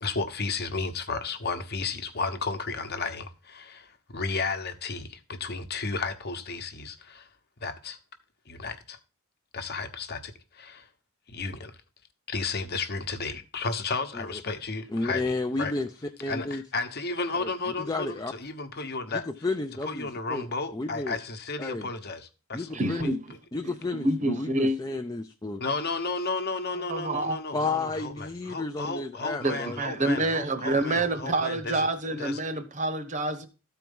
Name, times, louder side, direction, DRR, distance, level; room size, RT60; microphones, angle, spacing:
voice 1, 0.0-7.3 7.6-8.0 8.5-9.0 9.5-10.9 11.3-11.7 12.3-15.7 16.3-19.2 19.8-22.7 23.0-23.1 25.6-31.9 32.2-32.4, left 4 dB, 45° left, 1.1 m, -33 dB
voice 2, 14.9-15.9 16.2-16.6 17.4-17.5 17.8-18.3 19.1-20.5 20.7-21.2 21.6-21.9 22.5-23.1 23.5-25.6 27.5-29.8, left 3 dB, 15° left, 0.5 m, -32 dB
voice 3, 22.7-23.2 23.9-24.8 26.9-27.4 29.4-33.5, right 2 dB, 35° right, 1.0 m, -27 dB
13.5 x 4.6 x 5.3 m
head